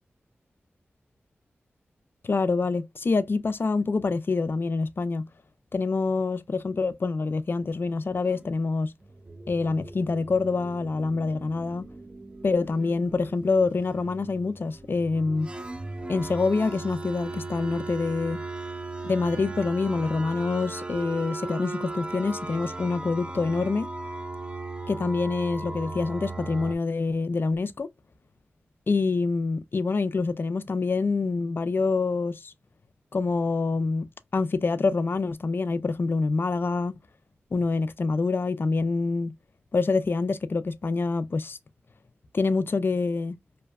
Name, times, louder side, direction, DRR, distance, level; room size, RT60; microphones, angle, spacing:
voice 1, 2.2-5.2 5.7-8.9 9.5-11.9 12.4-15.5 16.1-18.4 19.0-23.9 24.9-27.9 28.9-32.5 33.1-37.0 37.5-39.3 39.7-41.6 42.3-43.4, left 4 dB, 55° left, 0.4 m, -26 dB
sound 1, 7.6-8.5 9.0-26.8, right 2 dB, 20° right, 0.4 m, -38 dB
2.6 x 2.2 x 2.3 m
cardioid pair, 50°, 4 cm